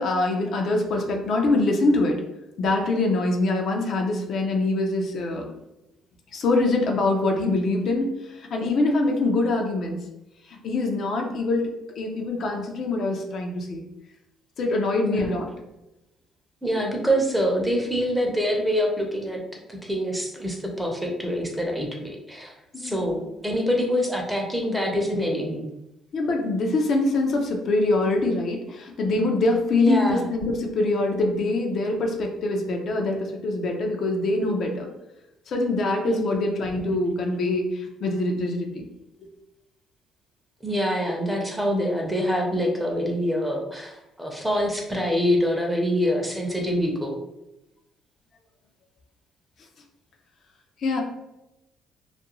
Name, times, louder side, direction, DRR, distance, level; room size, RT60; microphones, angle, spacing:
voice 1, 0.0-2.2 2.6-5.5 6.3-10.0 10.5-11.7 12.0-13.8 14.6-15.5 22.7-23.2 26.1-34.9 35.5-38.9 50.8-51.0, left 2 dB, 60° left, 2 dB, 0.5 m, -24 dB
voice 2, 15.0-15.4 16.6-19.4 19.7-25.6 29.8-30.3 36.1-36.6 40.6-47.2, equal, 5° right, 0 dB, 0.6 m, -25 dB
2.4 x 2.2 x 2.9 m, 0.91 s
cardioid pair, 100°, 0 cm